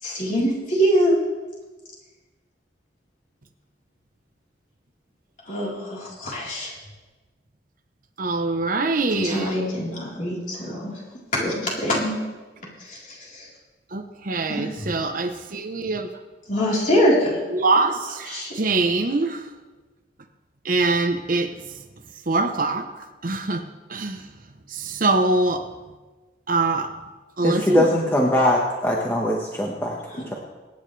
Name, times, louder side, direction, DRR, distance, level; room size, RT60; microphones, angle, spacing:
voice 1, 0.0-1.2 5.5-6.7 9.1-10.9 11.3-12.2 12.8-13.5 14.5-15.0 16.5-17.4 18.3-18.5 30.1-30.4, equal, 45° left, -5 dB, 4.0 m, -24 dB
voice 2, 8.2-9.5 13.9-16.1 17.5-19.5 20.6-21.5 22.3-22.9 23.2-23.6 23.9-24.2 24.7-25.6 26.5-26.9 27.4-27.9, right 3 dB, 50° right, 6 dB, 0.9 m, -23 dB
voice 3, 27.4-29.9, left 1 dB, 10° left, -2 dB, 1.3 m, -21 dB
23.5 x 9.9 x 3.3 m, 1.2 s
head